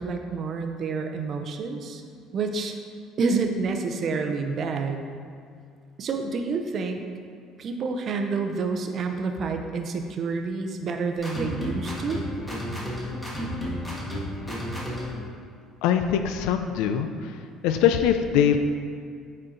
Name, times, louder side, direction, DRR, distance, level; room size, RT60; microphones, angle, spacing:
voice 1, 0.0-2.0 2.3-2.8 3.2-5.1 6.0-7.0 7.6-12.2, right 4 dB, 40° right, 5 dB, 0.6 m, -28 dB
sound 1, 11.2-15.2, equal, 5° left, 1.4 m, -32 dB
voice 2, 15.8-17.4 17.6-18.6, left 9 dB, 85° left, 7 dB, 0.4 m, -22 dB
8.8 x 4.3 x 3.8 m, 2.2 s
cardioid pair, 150°, 0 cm